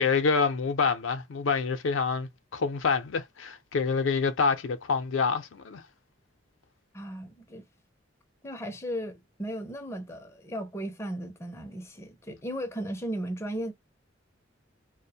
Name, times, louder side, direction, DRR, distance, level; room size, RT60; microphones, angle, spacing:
voice 1, 0.0-5.8, left 5 dB, 75° left, 0.5 m, -27 dB
voice 2, 6.9-7.7 8.4-13.7, equal, 15° left, 0.5 m, -36 dB
2.4 x 2.0 x 2.7 m
head